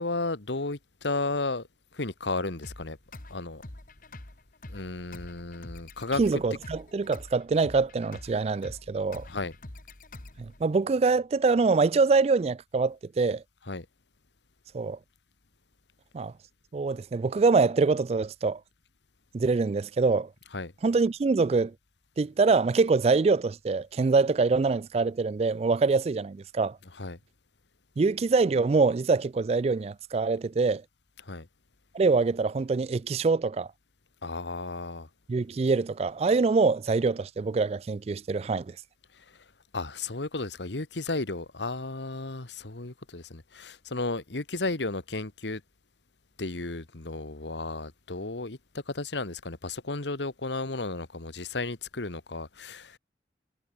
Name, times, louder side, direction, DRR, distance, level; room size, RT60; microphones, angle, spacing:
voice 1, 0.0-1.7 1.9-3.0 3.3-3.6 4.7-6.2 9.3-9.5 13.7-13.9 20.5-20.7 27.0-27.2 31.2-31.5 34.2-35.1 39.1-39.4 39.7-45.6 46.4-53.0, left 3 dB, 80° left, 1.6 m, -33 dB
sound 1, 2.6-10.6, left 1 dB, 50° left, 1.9 m, -46 dB
voice 2, 6.2-9.3 10.4-13.4 14.7-15.0 16.1-16.3 16.7-18.6 19.3-20.3 20.8-21.7 22.2-26.8 28.0-30.8 31.9-33.7 35.3-38.7, right 4 dB, 35° right, 0.3 m, -24 dB
head